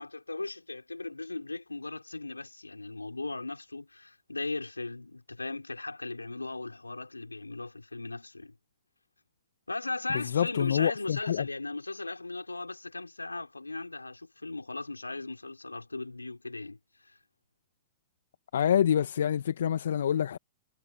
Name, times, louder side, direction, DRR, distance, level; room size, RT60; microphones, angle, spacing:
voice 1, 0.0-8.5 9.7-17.2, left 3 dB, 90° left, 4.9 m, -38 dB
voice 2, 10.1-11.5 18.5-20.4, left 9 dB, 65° left, 1.7 m, -26 dB
figure-of-eight pair, 105°, 0 cm